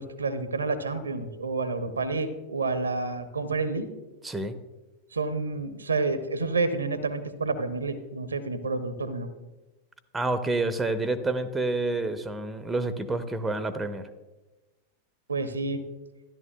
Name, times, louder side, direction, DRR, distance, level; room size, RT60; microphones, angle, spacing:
voice 1, 0.0-3.9 5.1-9.3 15.3-15.8, right 3 dB, 75° right, 12 dB, 0.6 m, -29 dB
voice 2, 4.2-4.5 10.1-14.0, right 2 dB, 10° right, 11 dB, 0.6 m, -28 dB
13.0 x 11.0 x 2.2 m, 1.2 s
figure-of-eight pair, 90°, 0 cm